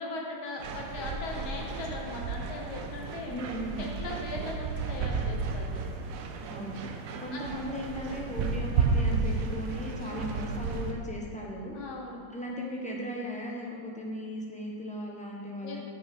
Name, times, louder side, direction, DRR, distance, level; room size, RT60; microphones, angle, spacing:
voice 1, 0.0-3.4 3.8-5.7 7.3-7.4 10.0-10.2 11.7-12.2 15.6-15.8, left 2 dB, 90° left, -1 dB, 2.1 m, -39 dB
sound 1, 0.6-10.9, right 4 dB, 70° right, 0.8 m, -33 dB
voice 2, 3.3-3.9 6.4-6.8 7.2-11.8 12.3-15.8, equal, 5° left, -3 dB, 0.7 m, -37 dB
8.3 x 6.2 x 5.3 m, 2.1 s
omnidirectional pair, 2.2 m